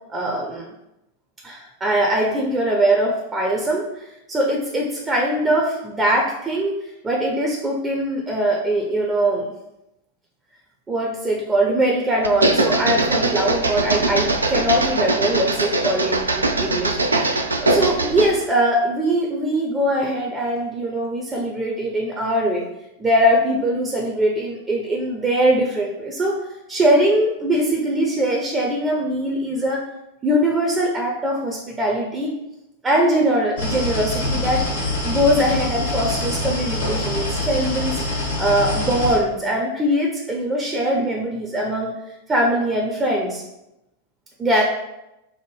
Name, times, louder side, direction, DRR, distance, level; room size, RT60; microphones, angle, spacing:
voice 1, 0.1-0.7 1.4-6.8 7.0-9.5 10.9-17.4 17.6-22.6 23.0-26.4 26.7-29.8 30.2-32.3 32.8-34.6 35.0-42.0 42.3-43.4 44.4-44.6, right 1 dB, 15° right, -1 dB, 0.6 m, -21 dB
sound 1, 12.2-18.4, right 2 dB, 75° right, 0.3 m, -21 dB
sound 2, 33.6-39.2, left 2 dB, 70° left, 1.4 m, -25 dB
5.3 x 2.1 x 3.3 m, 0.91 s
figure-of-eight pair, 90°, 0 cm